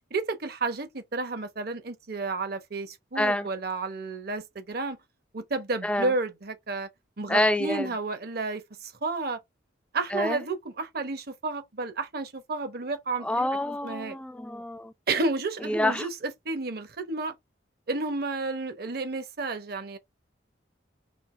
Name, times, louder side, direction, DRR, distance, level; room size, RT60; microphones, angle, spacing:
voice 1, 0.1-5.0 5.3-6.9 7.2-9.4 9.9-13.3 13.8-14.2 15.1-16.1 16.4-17.3 17.9-20.0, right 3 dB, 55° right, 0.9 m, -31 dB
voice 2, 3.2-3.5 5.8-6.1 7.3-7.9 10.1-10.4 13.2-14.9 15.6-16.1, left 1 dB, 5° left, 0.3 m, -27 dB
5.3 x 2.8 x 3.2 m
head